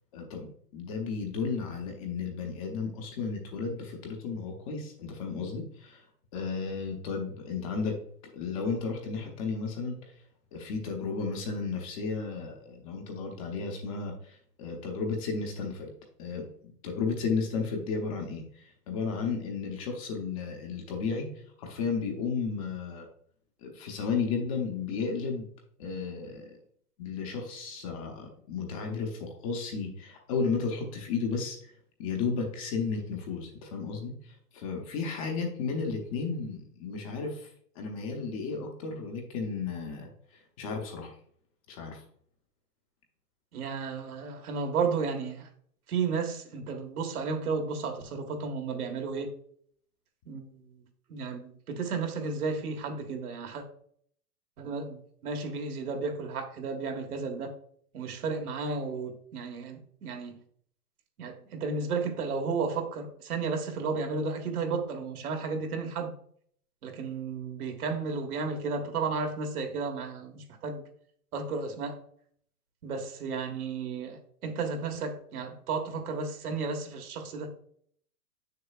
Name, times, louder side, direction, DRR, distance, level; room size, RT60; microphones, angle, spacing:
voice 1, 0.1-6.0 6.3-8.0 8.3-10.0 10.5-15.9 16.2-21.3 21.6-23.1 23.6-25.5 25.8-26.5 27.0-31.7 32.0-41.1 41.7-42.0, left 5 dB, 20° left, 0.7 m, -33 dB
voice 2, 43.5-45.5 45.9-49.3 50.3-50.6 51.1-53.6 54.6-57.5 57.9-60.4 61.2-66.1 66.8-70.8 71.3-72.0 72.8-77.5, right 4 dB, 65° right, 1.6 m, -33 dB
7.6 x 6.6 x 2.4 m
hypercardioid pair, 150°, 48 cm